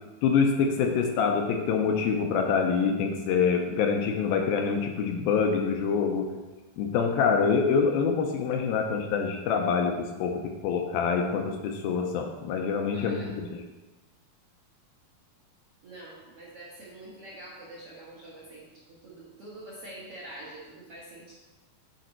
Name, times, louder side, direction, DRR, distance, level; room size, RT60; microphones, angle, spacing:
voice 1, 0.2-6.3 6.8-9.9 10.2-13.6, left 5 dB, 80° left, 3 dB, 2.3 m, -26 dB
voice 2, 12.9-13.4 15.8-21.3, right 1 dB, 60° right, -6 dB, 1.5 m, -45 dB
9.3 x 5.3 x 4.4 m, 1.2 s
omnidirectional pair, 4.7 m